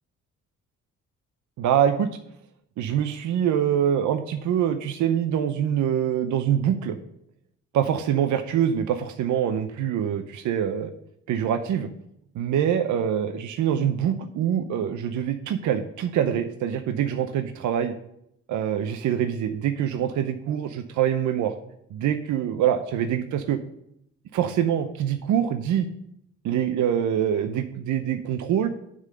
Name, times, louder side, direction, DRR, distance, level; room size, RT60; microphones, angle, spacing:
voice 1, 1.6-2.2 2.8-7.0 7.7-10.9 11.3-11.9 12.4-17.9 18.5-21.5 21.9-23.6 24.3-25.9 26.4-28.7, right 9 dB, 75° right, 8 dB, 0.7 m, -24 dB
9.6 x 3.8 x 6.7 m, 0.75 s
cardioid pair, 90°, 30 cm